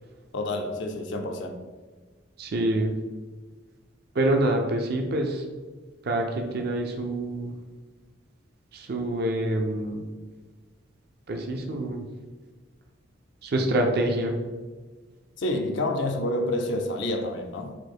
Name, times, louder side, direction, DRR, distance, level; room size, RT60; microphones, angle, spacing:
voice 1, 0.3-1.6 15.4-17.7, left 1 dB, 65° left, 4 dB, 0.5 m, -28 dB
voice 2, 2.4-2.9 4.2-5.4 6.1-7.5 8.7-10.0 11.3-12.0 13.4-14.3, right 1 dB, 50° right, 3 dB, 0.5 m, -26 dB
4.4 x 2.5 x 4.4 m, 1.4 s
head